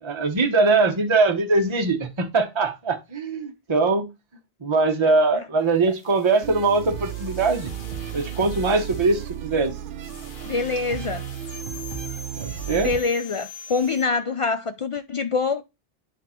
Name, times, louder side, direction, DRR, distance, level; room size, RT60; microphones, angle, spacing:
voice 1, 0.0-4.1 4.6-7.7 8.1-9.7 12.4-12.9, right 3 dB, 30° right, 0.8 m, -22 dB
sound 1, 5.6-14.1, left 4 dB, 70° left, 1.3 m, -44 dB
sound 2, 6.4-13.0, right 11 dB, 60° right, 0.7 m, -34 dB
voice 2, 10.5-11.2 12.8-15.6, left 4 dB, 50° left, 0.4 m, -25 dB
9.0 x 3.6 x 4.3 m
omnidirectional pair, 1.0 m